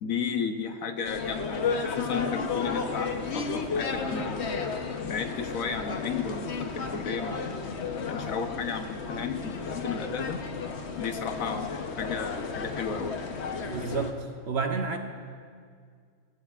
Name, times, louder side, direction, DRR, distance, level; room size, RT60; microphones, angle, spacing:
voice 1, 0.0-4.5 5.0-10.4 11.0-13.4, left 6 dB, 70° left, 7 dB, 1.3 m, -34 dB
sound 1, 1.0-14.1, left 4 dB, 55° left, 1.1 m, -33 dB
voice 2, 13.7-15.0, right 4 dB, 55° right, 5 dB, 1.0 m, -30 dB
20.0 x 16.0 x 2.4 m, 2.1 s
omnidirectional pair, 1.5 m